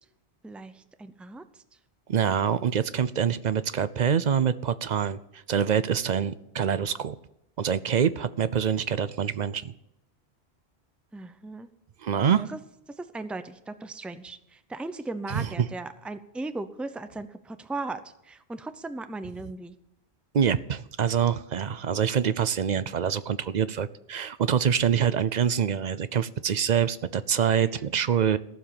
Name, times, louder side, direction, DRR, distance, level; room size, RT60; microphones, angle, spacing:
voice 1, 0.4-1.4 11.1-11.7 12.3-12.6 13.0-19.8 27.6-27.7, right 2 dB, ahead, 11 dB, 0.6 m, -37 dB
voice 2, 2.1-5.2 5.5-7.2 7.6-9.7 12.0-12.5 15.3-15.7 20.3-28.4, right 8 dB, 50° right, 15 dB, 0.6 m, -25 dB
15.0 x 7.2 x 8.7 m, 0.83 s
omnidirectional pair, 1.1 m